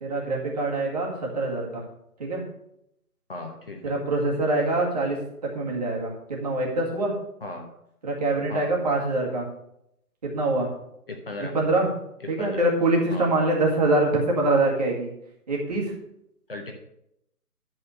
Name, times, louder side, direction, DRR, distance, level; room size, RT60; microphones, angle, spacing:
voice 1, 0.0-1.8 2.2-2.4 3.8-7.1 8.0-9.5 10.3-10.7 11.4-11.9 12.3-15.1 15.5-15.9, right 2 dB, 25° right, -3 dB, 1.9 m, -24 dB
voice 2, 3.3-4.0 7.4-7.7 8.5-8.7 11.1-11.5 12.2-12.7 13.1-13.3 16.5-16.7, left 2 dB, 35° left, 3 dB, 1.1 m, -36 dB
11.0 x 4.2 x 7.5 m, 0.79 s
figure-of-eight pair, 165°, 46 cm